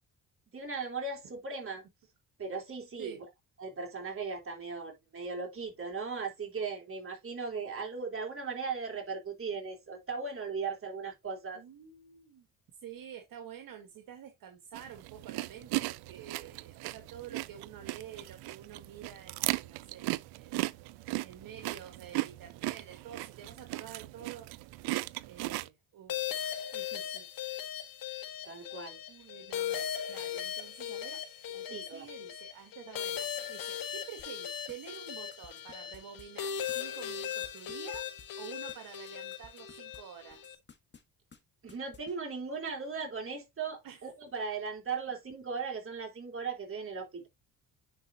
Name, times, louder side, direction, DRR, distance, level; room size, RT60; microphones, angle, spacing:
voice 1, 0.5-1.8 2.4-3.2 3.6-11.6 28.4-29.0 31.7-32.1 41.6-47.3, right 5 dB, 35° right, 3.7 m, -38 dB
voice 2, 11.5-12.5 12.8-20.7 21.2-24.5 25.3-26.3 26.7-27.2 29.1-38.1 38.4-40.6 43.8-44.1, right 9 dB, 65° right, 1.5 m, -49 dB
sound 1, 14.7-25.7, right 20 dB, 85° right, 0.5 m, -37 dB
sound 2, 26.1-40.6, left 9 dB, 65° left, 1.4 m, -38 dB
sound 3, 34.2-40.0 40.3-41.0 41.3-41.4 41.7-42.1, left 5 dB, 30° left, 1.5 m, -55 dB
9.8 x 4.3 x 2.8 m
cardioid pair, 85°, 37 cm